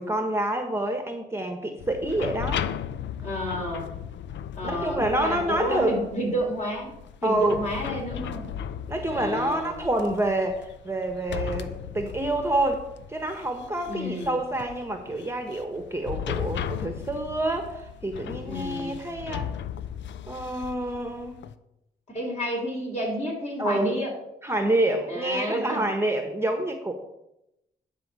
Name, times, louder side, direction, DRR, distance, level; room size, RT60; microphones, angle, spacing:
voice 1, 0.0-2.6 4.6-6.0 7.2-7.6 8.9-19.5 20.3-21.4 23.6-23.9 24.4-26.9, right 1 dB, 15° right, 5 dB, 1.1 m, -27 dB
sound 1, 1.8-21.5, left 9 dB, 80° left, 0.5 m, -36 dB
voice 2, 3.2-3.9 4.6-6.9 7.2-8.5 9.1-9.8 13.9-14.4 18.5-18.9 22.1-24.1 25.1-25.9, equal, 35° left, -1 dB, 3.5 m, -30 dB
10.5 x 3.9 x 6.7 m, 0.87 s
cardioid pair, 65°, 19 cm